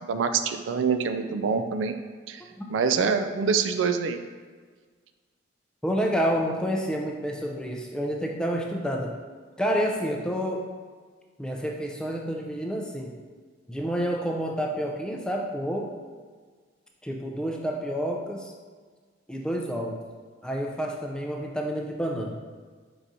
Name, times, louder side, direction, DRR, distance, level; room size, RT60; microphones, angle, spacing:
voice 1, 0.1-1.9 2.3-2.4 2.7-4.2, right 5 dB, 90° right, 8 dB, 0.3 m, -25 dB
voice 2, 5.8-9.2 9.6-10.7 11.4-13.1 13.7-15.9 17.0-18.5 19.3-20.0 20.4-22.4, equal, 5° left, 0 dB, 0.4 m, -29 dB
4.7 x 4.1 x 2.6 m, 1.6 s
head